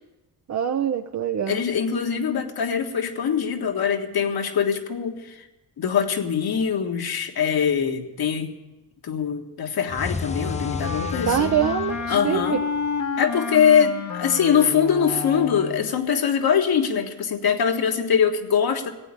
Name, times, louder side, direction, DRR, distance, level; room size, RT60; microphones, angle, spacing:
voice 1, 0.5-1.6 11.3-12.6, right 9 dB, 45° right, 6 dB, 0.6 m, -24 dB
voice 2, 1.5-5.4 5.8-8.5 9.0-11.5 12.1-12.6 13.2-18.9, left 7 dB, 65° left, 4 dB, 1.6 m, -23 dB
sound 1, 9.9-13.0, left 4 dB, 15° left, 0.5 m, -33 dB
Wind instrument woodwind instrument, 10.2-16.0, left 6 dB, 45° left, 1.1 m, -30 dB
15.0 x 8.6 x 8.5 m, 1.1 s
cardioid pair, 80°, 39 cm